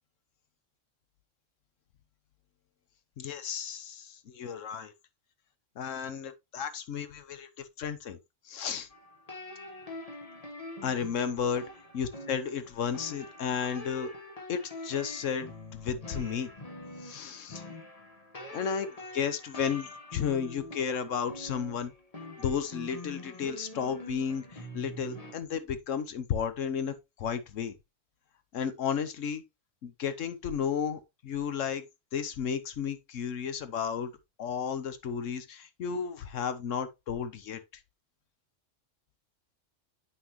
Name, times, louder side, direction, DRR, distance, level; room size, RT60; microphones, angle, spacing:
voice 1, 3.2-4.9 5.8-8.2 8.4-8.9 10.8-11.6 11.9-14.1 14.5-15.5 15.8-16.5 17.0-17.6 18.5-21.9 22.4-27.7 28.5-29.4 29.8-31.8 32.1-34.1 34.4-37.6, left 7 dB, 75° left, 1.2 m, -33 dB
sound 1, 8.9-25.3, left 1 dB, 30° left, 1.4 m, -45 dB
8.1 x 5.8 x 3.0 m
omnidirectional pair, 1.3 m